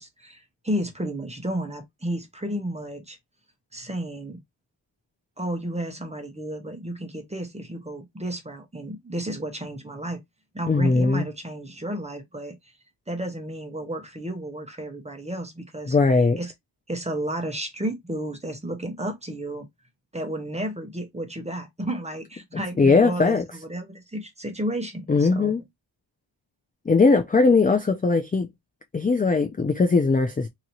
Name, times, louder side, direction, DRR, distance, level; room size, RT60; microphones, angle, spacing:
voice 1, 0.0-3.2 3.7-4.4 5.4-10.2 10.5-12.7 13.1-16.0 16.4-16.5 16.9-19.7 20.1-25.5, right 1 dB, 15° right, 0.9 m, -32 dB
voice 2, 10.7-11.3 15.9-16.4 22.8-23.4 25.1-25.6 26.9-28.5 28.9-30.5, left 4 dB, 20° left, 0.4 m, -19 dB
2.9 x 2.8 x 2.6 m
wide cardioid pair, 80°, 47 cm